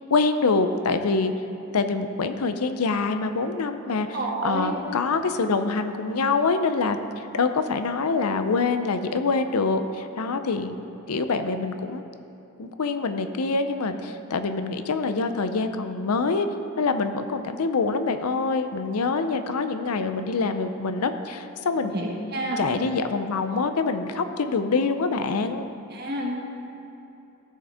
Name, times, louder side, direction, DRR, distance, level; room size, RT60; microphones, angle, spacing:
voice 1, 0.1-1.3 1.7-4.1 4.4-10.8 11.1-12.0 12.6-16.5 16.8-21.9 22.6-25.7, left 4 dB, 90° left, 9 dB, 0.6 m, -25 dB
voice 2, 4.1-4.7 21.8-22.6 25.9-26.3, right 1 dB, 45° right, -2 dB, 1.5 m, -29 dB
15.0 x 6.3 x 3.5 m, 2.9 s
head